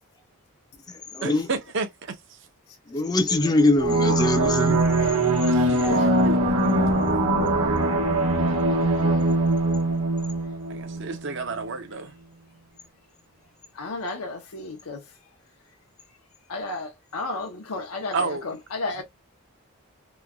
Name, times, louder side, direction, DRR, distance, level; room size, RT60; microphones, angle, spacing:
voice 1, 1.2-2.2 5.5-6.4 10.7-12.1 18.1-18.6, right 4 dB, 55° right, 0.6 m, -31 dB
voice 2, 2.9-4.8, left 2 dB, 20° left, 0.4 m, -22 dB
sound 1, 3.8-11.2, right 2 dB, 85° right, 1.0 m, -22 dB
voice 3, 8.4-9.3 13.7-15.0 16.5-19.0, left 3 dB, 85° left, 0.6 m, -34 dB
3.0 x 2.2 x 2.3 m
head